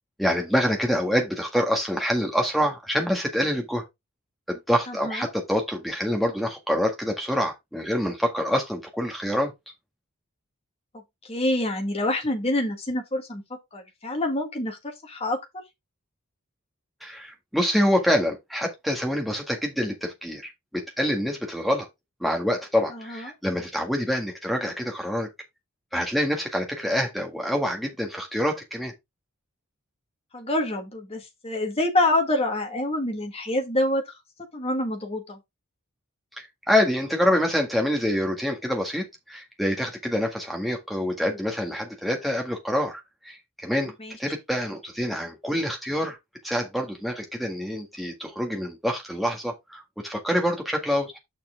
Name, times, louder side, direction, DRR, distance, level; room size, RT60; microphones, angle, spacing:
voice 1, 0.2-3.8 4.5-9.5 17.0-21.9 22.2-25.3 25.9-28.9 36.4-43.9 44.2-46.2 46.4-51.2, equal, ahead, 1.7 m, -26 dB
voice 2, 4.9-5.3 11.3-13.4 13.7-15.4 22.9-23.3 30.3-34.1 34.5-35.4 44.0-44.1, left 1 dB, 30° left, 1.7 m, -26 dB
6.8 x 5.8 x 3.5 m
head